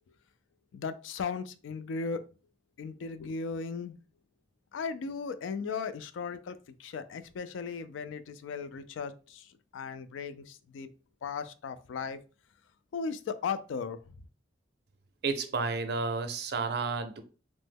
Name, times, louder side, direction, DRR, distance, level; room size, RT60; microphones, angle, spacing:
voice 1, 0.7-2.2 2.8-4.0 4.7-10.9 11.2-12.2 12.9-14.0, left 5 dB, 90° left, 0.3 m, -37 dB
voice 2, 15.2-17.2, right 4 dB, 60° right, 0.5 m, -31 dB
3.1 x 2.0 x 3.4 m
head